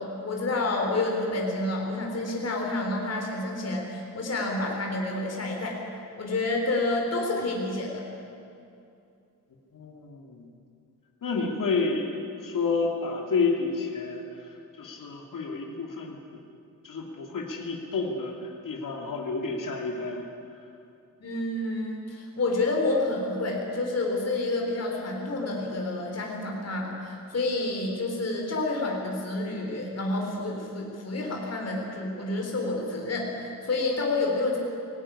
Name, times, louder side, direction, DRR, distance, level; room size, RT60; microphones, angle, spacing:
voice 1, 0.0-5.8 6.2-8.0 21.2-34.6, left 2 dB, 50° left, 0 dB, 3.7 m, -29 dB
voice 2, 9.7-10.4 11.2-14.2 14.8-16.2 16.8-18.4 18.6-20.2, left 4 dB, 75° left, 0 dB, 2.8 m, -30 dB
20.0 x 17.0 x 10.0 m, 2.6 s
wide cardioid pair, 145°, 32 cm